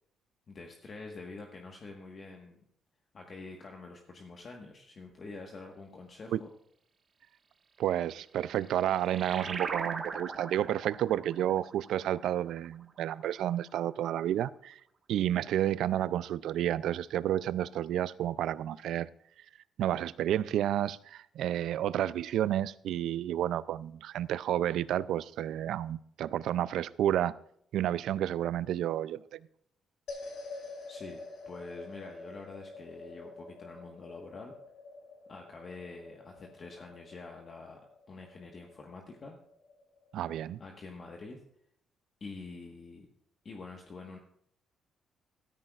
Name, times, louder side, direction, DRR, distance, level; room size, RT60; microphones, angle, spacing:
voice 1, 0.5-2.6 3.1-6.5 30.9-31.2 31.4-34.5 35.3-37.8 38.1-39.4 40.6-41.4 42.2-43.1 43.4-44.2, left 3 dB, 45° left, 1 dB, 1.4 m, -46 dB
voice 2, 7.8-14.8 15.1-19.1 19.4-19.5 19.8-27.4 27.7-29.5 40.1-40.6, right 11 dB, 80° right, 18 dB, 0.3 m, -31 dB
sound 1, 8.2-13.3, right 4 dB, 45° right, 1.4 m, -41 dB
sound 2, 30.1-40.5, left 3 dB, 70° left, 3.5 m, -48 dB
14.0 x 13.0 x 2.4 m, 0.68 s
cardioid pair, 90°, 0 cm